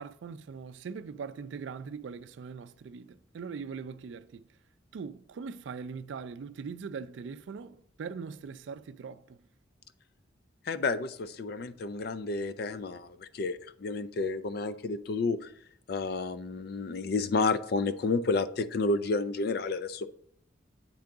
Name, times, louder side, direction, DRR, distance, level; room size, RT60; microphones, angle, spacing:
voice 1, 0.0-4.4 4.9-9.4, right 5 dB, 80° right, 0.3 m, -41 dB
voice 2, 10.7-15.5 15.9-20.1, left 3 dB, 55° left, 0.4 m, -31 dB
8.6 x 3.8 x 3.5 m
head